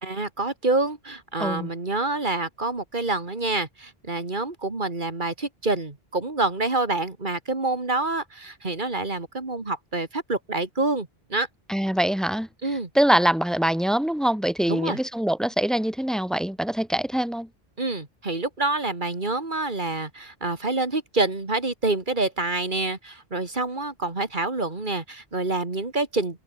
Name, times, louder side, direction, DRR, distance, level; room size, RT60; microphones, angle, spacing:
voice 1, 0.0-11.5 12.6-12.9 14.7-15.0 17.8-26.4, right 2 dB, 50° right, 2.7 m, -27 dB
voice 2, 11.7-12.5 13.0-17.5, right 1 dB, ahead, 1.7 m, -23 dB
omnidirectional pair, 1.0 m